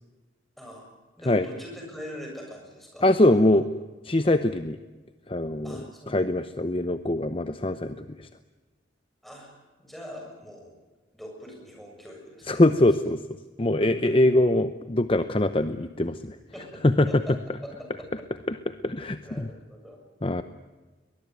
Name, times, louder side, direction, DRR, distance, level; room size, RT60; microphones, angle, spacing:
voice 1, 0.6-0.9 1.2-3.1 3.3-3.5 5.6-6.2 9.2-9.5 9.8-10.8 11.1-12.6 13.8-14.2 16.5-17.3 17.6-18.1 19.2-20.0, equal, ahead, 0 dB, 7.2 m, -42 dB
voice 2, 3.0-3.6 4.1-4.8 5.3-5.8 6.1-8.3 12.5-13.2 13.6-16.4 16.8-17.1 18.5-19.5 20.2-20.4, left 1 dB, 25° left, 10 dB, 0.8 m, -23 dB
23.0 x 21.0 x 9.4 m, 1.3 s
head